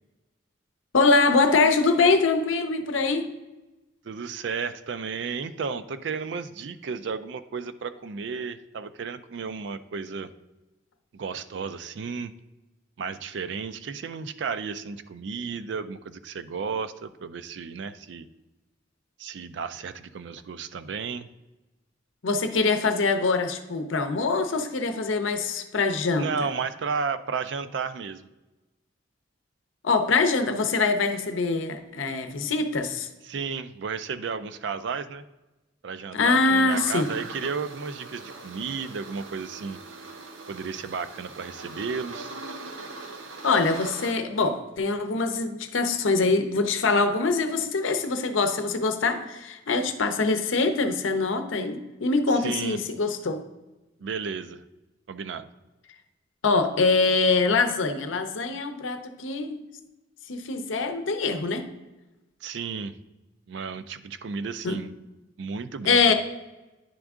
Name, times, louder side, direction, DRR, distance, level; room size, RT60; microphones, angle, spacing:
voice 1, 0.9-3.3 22.2-26.5 29.8-33.1 36.1-37.1 43.4-53.4 56.4-59.6 60.3-61.6 64.6-64.8 65.9-66.1, left 3 dB, 90° left, 8 dB, 0.7 m, -24 dB
voice 2, 4.0-10.3 11.1-12.3 13.0-18.3 19.2-21.3 26.2-28.3 33.2-35.2 35.8-39.8 40.5-42.3 52.4-52.8 54.0-54.6 55.1-55.5 62.4-62.9 63.5-64.9 65.4-66.1, right 5 dB, 65° right, 12 dB, 0.4 m, -33 dB
sound 1, 36.7-44.1, right 3 dB, 85° right, 0.8 m, -41 dB
10.0 x 3.5 x 3.6 m, 1.1 s
head